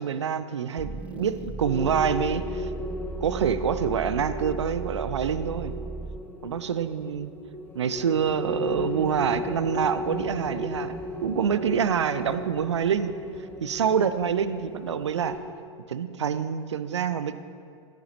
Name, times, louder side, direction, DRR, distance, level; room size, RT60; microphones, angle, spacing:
voice 1, 0.0-2.7 3.2-5.7 6.4-7.3 7.7-10.9 11.2-13.1 13.6-15.4 15.9-17.4, right 7 dB, 75° right, 12 dB, 0.5 m, -26 dB
sound 1, 0.8-6.4, right 3 dB, 10° right, 0.3 m, -37 dB
sound 2, 1.6-15.4, left 1 dB, 15° left, 1.4 m, -36 dB
13.5 x 9.4 x 3.0 m, 2.2 s
figure-of-eight pair, 90°, 15 cm